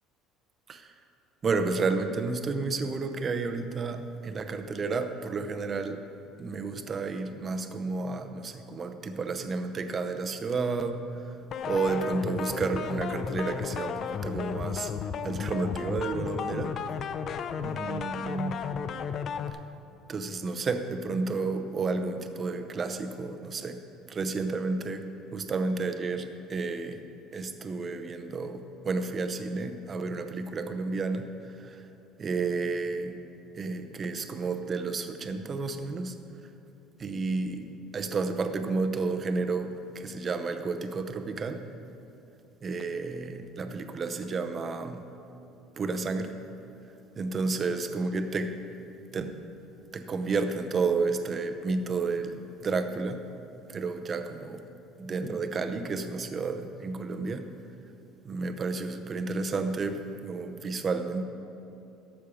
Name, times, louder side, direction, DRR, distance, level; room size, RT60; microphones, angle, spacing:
voice 1, 1.4-6.0 6.4-11.3 11.7-14.9 15.2-16.7 17.6-18.6 20.1-23.8 24.1-25.0 25.3-27.0 27.3-31.8 32.2-33.2 33.5-36.2 37.0-37.7 37.9-41.6 42.6-45.0 45.8-46.4 47.2-48.5 49.1-49.3 49.9-53.2 53.7-54.6 55.0-57.4 58.2-61.2, right 4 dB, 30° right, 8 dB, 0.7 m, -31 dB
sound 1, 11.5-19.5, left 7 dB, 45° left, 0.4 m, -34 dB
12.5 x 7.3 x 4.9 m, 2.7 s
cardioid pair, 135°, 0 cm